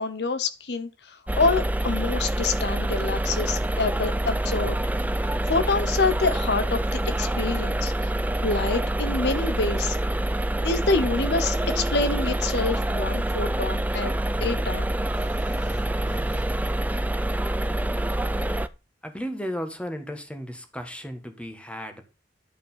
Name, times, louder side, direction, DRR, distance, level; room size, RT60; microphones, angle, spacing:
voice 1, 0.0-4.8 5.2-8.1 8.4-10.0 10.6-14.1 14.4-14.9 15.5-15.7 16.1-16.3, left 3 dB, 65° left, 0.8 m, -27 dB
sound 1, 1.3-18.7, right 1 dB, 10° right, 0.5 m, -26 dB
voice 2, 19.0-22.0, equal, 5° left, 1.5 m, -34 dB
11.0 x 5.2 x 5.6 m
head